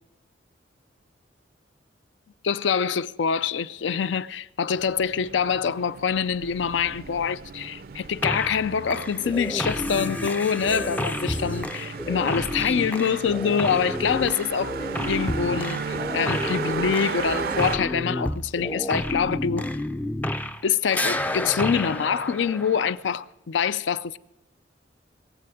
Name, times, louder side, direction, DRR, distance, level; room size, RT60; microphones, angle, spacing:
voice 1, 2.4-19.7 20.6-24.2, left 7 dB, 70° left, 0.4 m, -25 dB
sound 1, 4.7-17.8, right 6 dB, 55° right, 0.4 m, -35 dB
sound 2, 8.2-8.6 8.9-20.7 20.9-23.1, left 1 dB, 10° left, 0.4 m, -30 dB
22.0 x 7.7 x 4.9 m
head